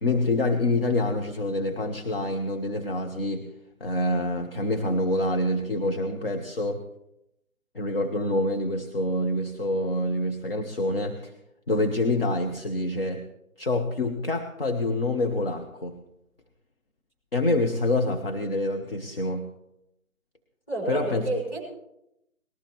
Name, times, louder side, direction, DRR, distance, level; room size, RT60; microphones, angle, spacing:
voice 1, 0.0-3.5 3.8-6.8 7.7-11.3 11.7-13.2 13.6-15.9 17.3-19.4 20.9-21.3, left 1 dB, 45° left, 4 dB, 1.0 m, -26 dB
voice 2, 20.7-21.6, right 2 dB, 15° left, -4 dB, 5.2 m, -30 dB
19.5 x 13.5 x 3.1 m, 0.84 s
figure-of-eight pair, 150°, 41 cm